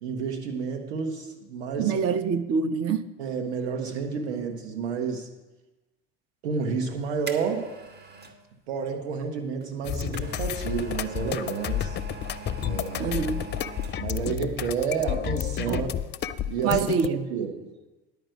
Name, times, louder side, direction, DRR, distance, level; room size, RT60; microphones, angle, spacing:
voice 1, 0.0-1.9 3.2-5.3 6.4-7.7 8.7-11.9 12.6-13.2 14.0-15.9 16.5-17.6, right 5 dB, 80° right, 1.4 m, -30 dB
voice 2, 1.8-3.0 13.0-13.4 15.7-15.9 16.4-17.3, right 6 dB, 50° right, 0.8 m, -26 dB
sound 1, 6.7-8.4 9.6-14.3 14.6-14.7, right 4 dB, 30° right, 1.4 m, -42 dB
sound 2, 9.8-17.1, left 11 dB, 35° left, 0.5 m, -31 dB
10.5 x 5.4 x 8.0 m
hypercardioid pair, 75°, 32 cm